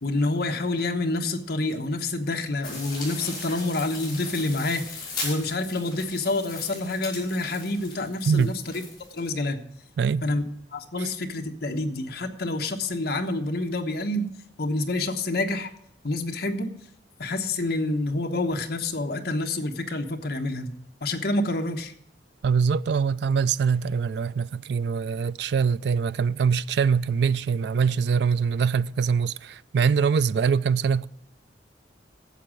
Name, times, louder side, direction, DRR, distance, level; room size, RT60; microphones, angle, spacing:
voice 1, 0.0-8.8 9.1-9.6 10.2-10.4 10.7-14.3 14.6-15.7 16.0-16.7 17.2-20.8 21.0-21.9, left 2 dB, 60° left, 1.1 m, -28 dB
sound 1, 2.6-9.3, left 3 dB, 25° left, 6.0 m, -38 dB
voice 2, 22.4-31.1, right 6 dB, 65° right, 0.3 m, -23 dB
11.5 x 7.4 x 6.2 m
head